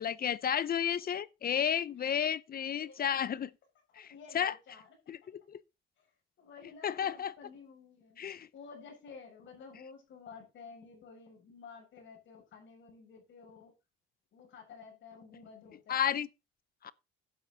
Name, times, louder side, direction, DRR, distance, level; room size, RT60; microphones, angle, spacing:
voice 1, 0.0-3.5 4.0-4.1 4.3-4.5 5.1-5.6 6.8-7.3 8.2-8.5 15.9-16.3 16.8-16.9, left 9 dB, 50° left, 0.7 m, -32 dB
voice 2, 2.8-3.4 3.9-5.0 6.0-6.1 6.4-13.7 14.3-16.2, left 5 dB, 70° left, 7.2 m, -52 dB
11.5 x 8.6 x 4.1 m
cardioid pair, 90°, 20 cm